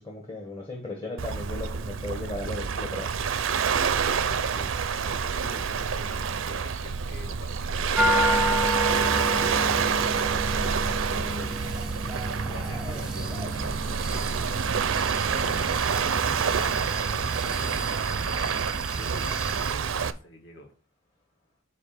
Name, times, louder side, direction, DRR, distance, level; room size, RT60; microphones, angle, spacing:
voice 1, 0.0-3.1, left 2 dB, 25° left, 0 dB, 1.2 m, -36 dB
Waves surf, 1.2-20.1, right 6 dB, 70° right, 0.5 m, -27 dB
voice 2, 3.9-8.3 8.9-11.8 12.4-14.3 15.1-18.6 18.9-20.7, left 1 dB, 55° left, 1 dB, 1.9 m, -45 dB
sound 1, 8.0-19.7, equal, 5° right, 0.4 m, -31 dB
8.0 x 2.8 x 5.6 m, 0.40 s
head